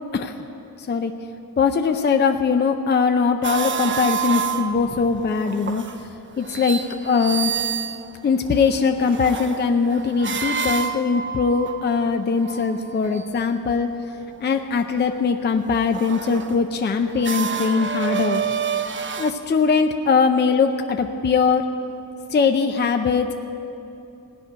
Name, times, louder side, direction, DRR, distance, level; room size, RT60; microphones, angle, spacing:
voice 1, 0.1-0.4 0.8-1.1 1.6-5.8 6.4-7.5 8.2-13.9 14.4-18.4 19.2-21.7 22.3-23.4, left 5 dB, 30° left, 6 dB, 0.5 m, -21 dB
sound 1, 3.4-6.0 6.4-13.5 14.7-15.2 15.6-19.3, right 7 dB, 35° right, 0.5 m, -29 dB
16.5 x 6.0 x 9.9 m, 2.8 s
wide cardioid pair, 165°, 35 cm